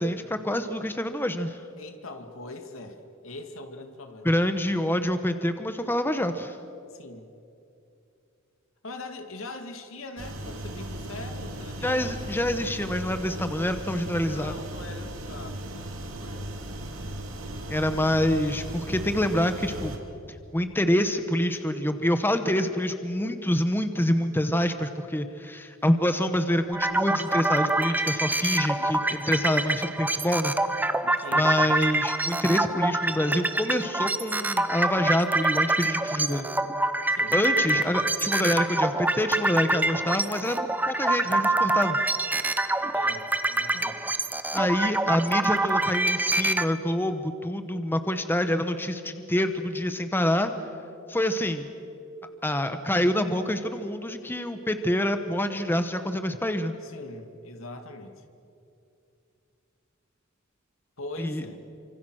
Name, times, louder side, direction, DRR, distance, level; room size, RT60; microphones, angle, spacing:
voice 1, 0.0-1.6 4.2-6.6 11.8-14.5 17.7-20.0 20.5-30.5 31.3-36.5 37.3-40.6 40.9-42.0 44.5-50.5 51.1-51.7 52.4-56.7 61.2-61.4, left 1 dB, 10° left, 8 dB, 1.0 m, -26 dB
voice 2, 1.8-3.0 3.2-4.4 6.9-7.3 8.8-12.3 14.2-16.5 28.5-29.0 31.2-31.7 37.1-38.0 42.9-44.1 56.8-58.2 61.0-61.6, left 2 dB, 75° left, 6 dB, 2.4 m, -42 dB
sound 1, 10.2-20.0, right 1 dB, 80° right, 3.0 m, -37 dB
sound 2, 26.7-46.7, right 2 dB, 10° right, 0.9 m, -26 dB
28.5 x 26.0 x 6.4 m, 2.6 s
head